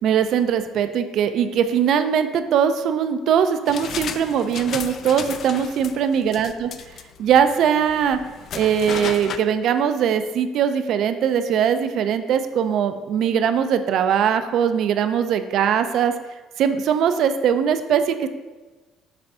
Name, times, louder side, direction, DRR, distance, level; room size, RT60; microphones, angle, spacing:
voice 1, 0.0-6.7 7.2-8.2 8.5-16.1 16.6-18.3, right 8 dB, 55° right, 9 dB, 0.4 m, -21 dB
sound 1, 3.7-9.4, left 7 dB, 45° left, 0.3 m, -34 dB
6.7 x 3.4 x 5.5 m, 1.3 s
cardioid pair, 145°, 0 cm